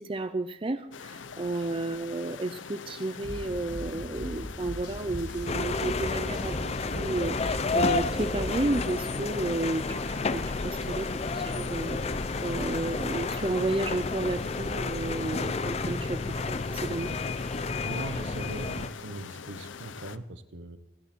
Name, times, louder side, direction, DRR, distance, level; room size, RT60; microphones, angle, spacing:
voice 1, 0.0-6.5 6.9-12.0 12.4-17.1, right 2 dB, 30° right, 10 dB, 0.5 m, -32 dB
sound 1, 0.9-20.2, left 5 dB, 85° left, 0.7 m, -43 dB
sound 2, 3.2-8.8, equal, 65° left, 5.3 m, -38 dB
sound 3, 5.5-18.9, left 3 dB, 35° left, 0.6 m, -31 dB
voice 2, 17.8-20.8, right 2 dB, 75° right, 11 dB, 1.2 m, -40 dB
27.5 x 11.0 x 4.5 m, 0.92 s
head